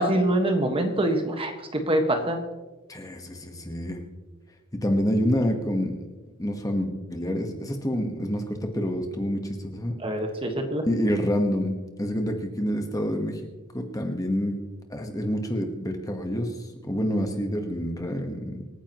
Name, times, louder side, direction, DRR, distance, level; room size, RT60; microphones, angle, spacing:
voice 1, 0.0-2.4 10.0-10.9, right 1 dB, 25° right, 4 dB, 1.5 m, -25 dB
voice 2, 2.9-4.0 4.7-6.0 6.4-9.9 10.8-13.5 13.7-14.6 14.9-16.6 16.8-18.6, equal, 15° left, 4 dB, 1.3 m, -27 dB
26.0 x 9.9 x 3.0 m, 1.2 s
head